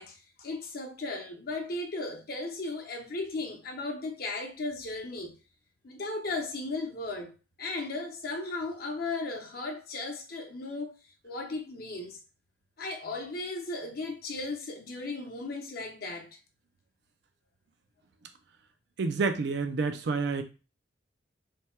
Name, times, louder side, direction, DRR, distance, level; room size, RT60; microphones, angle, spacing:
voice 1, 0.0-5.3 5.8-7.3 7.6-10.9 11.2-12.2 12.8-16.3, left 2 dB, 55° left, 0.7 m, -36 dB
voice 2, 19.0-20.4, right 4 dB, 65° right, 0.4 m, -28 dB
3.3 x 2.2 x 4.3 m
head